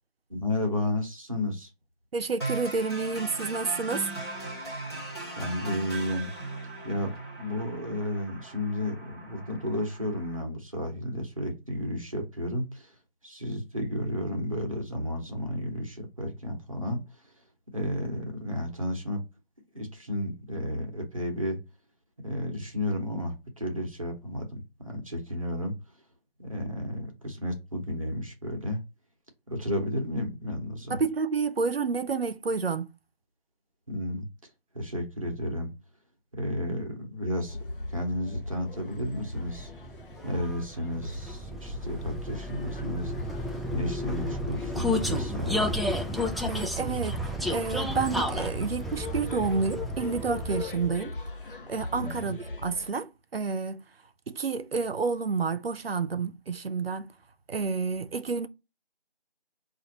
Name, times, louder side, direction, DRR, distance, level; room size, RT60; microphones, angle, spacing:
voice 1, 0.3-1.7 5.4-6.3 6.8-12.9 13.2-17.0 17.7-19.2 19.7-21.6 22.2-25.7 26.4-28.8 29.5-31.0 33.9-34.3 34.7-35.7 36.3-37.6 37.9-39.7 40.2-43.1 43.7-45.8 52.0-52.4, left 1 dB, 35° right, 0.9 m, -32 dB
voice 2, 2.1-4.1 30.9-32.9 46.5-51.1 51.7-53.8 54.3-57.1 57.5-58.5, right 4 dB, 70° right, 0.6 m, -29 dB
sound 1, 2.4-10.4, right 2 dB, 25° left, 1.1 m, -39 dB
sound 2, 37.5-52.9, left 2 dB, 60° left, 0.7 m, -40 dB
Vehicle, 39.1-51.0, left 1 dB, ahead, 0.3 m, -32 dB
5.3 x 2.5 x 2.9 m
figure-of-eight pair, 175°, 31 cm